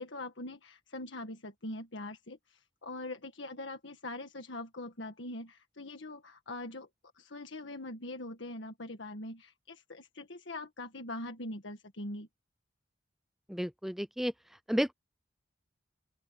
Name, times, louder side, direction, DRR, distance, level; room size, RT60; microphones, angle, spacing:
voice 1, 0.0-6.9 7.1-12.3, left 2 dB, 70° left, 1.6 m, -42 dB
voice 2, 13.5-14.3 14.7-14.9, equal, ahead, 0.4 m, -31 dB
open air
head